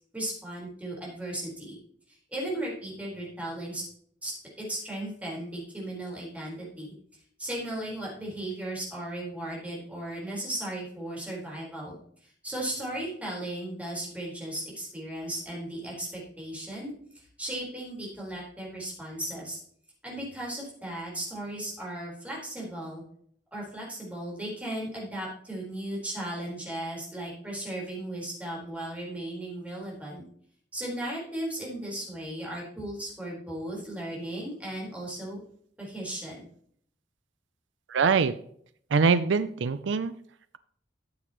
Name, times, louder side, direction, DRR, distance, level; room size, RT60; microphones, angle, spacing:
voice 1, 0.1-1.8 2.1-3.8 4.2-6.9 7.4-19.6 20.0-23.0 23.5-30.2 30.7-35.4 35.8-36.5, right 1 dB, 10° right, -4 dB, 4.3 m, -36 dB
voice 2, 37.9-38.3 38.9-40.1, right 5 dB, 80° right, 14 dB, 0.5 m, -23 dB
13.5 x 8.0 x 3.0 m, 0.62 s
head